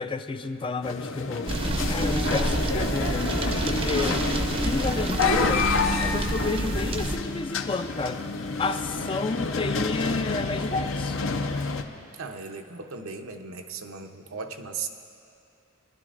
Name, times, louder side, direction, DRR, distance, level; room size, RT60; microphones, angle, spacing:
voice 1, 0.0-1.5 1.9-3.4 3.7-4.3 4.6-5.7 6.0-8.2 8.6-11.2, left 3 dB, 25° left, 9 dB, 0.3 m, -30 dB
sound 1, 0.8-11.8, left 4 dB, 65° left, 0.6 m, -29 dB
sound 2, 1.5-7.2, right 1 dB, 25° right, 0.6 m, -28 dB
voice 2, 12.2-14.9, right 5 dB, 75° right, 6 dB, 0.7 m, -37 dB
22.5 x 11.0 x 2.5 m, 2.7 s
head